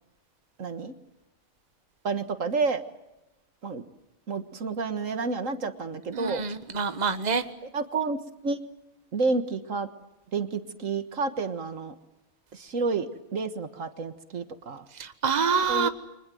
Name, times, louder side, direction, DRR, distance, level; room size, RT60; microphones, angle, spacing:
voice 1, 0.6-0.9 2.0-2.8 3.6-3.8 4.3-6.4 7.7-8.6 9.1-9.9 10.3-12.0 12.5-14.9 15.7-15.9, right 4 dB, 70° right, 10 dB, 1.9 m, -30 dB
voice 2, 6.1-7.4 15.0-15.9, right 5 dB, 30° right, 9 dB, 1.5 m, -26 dB
30.0 x 25.0 x 7.8 m, 0.94 s
omnidirectional pair, 1.4 m